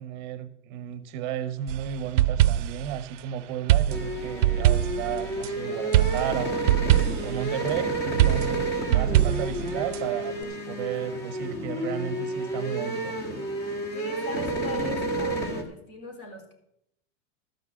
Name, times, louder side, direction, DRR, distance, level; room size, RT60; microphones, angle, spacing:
voice 1, 0.0-6.6 7.2-13.2, right 10 dB, 40° right, 12 dB, 0.8 m, -33 dB
sound 1, 1.7-2.9 3.7-5.5 5.9-7.4 8.2-10.0, right 13 dB, 90° right, 0.6 m, -23 dB
sound 2, 3.9-15.6, right 1 dB, 30° left, 1.7 m, -31 dB
voice 2, 13.9-16.5, right 1 dB, 50° left, 3 dB, 3.8 m, -39 dB
13.0 x 6.0 x 7.5 m, 0.77 s
supercardioid pair, 165°, 36 cm